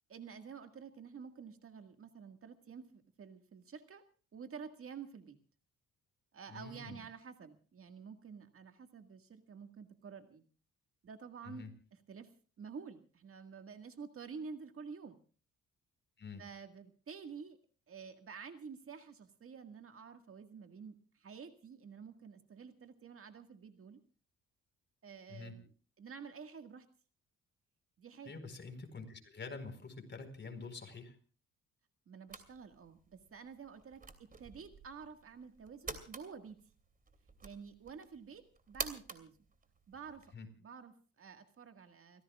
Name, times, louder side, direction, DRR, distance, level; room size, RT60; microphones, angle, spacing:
voice 1, 0.1-4.1 4.3-5.4 6.3-10.4 11.0-11.7 11.9-12.3 12.6-15.2 16.4-17.6 17.9-24.0 25.0-25.7 26.0-26.9 28.0-28.3 32.1-36.7 37.4-39.4 39.9-40.3 40.6-42.2, right 6 dB, 45° right, 7 dB, 1.8 m, -50 dB
voice 2, 6.5-7.0 11.5-11.7 16.2-16.4 25.3-25.5 28.3-31.1 40.3-40.5, left 4 dB, 35° left, 7 dB, 4.7 m, -47 dB
sound 1, 32.3-40.4, right 4 dB, 30° right, 2.8 m, -48 dB
30.0 x 16.5 x 2.4 m, 0.40 s
cardioid pair, 90°, 30 cm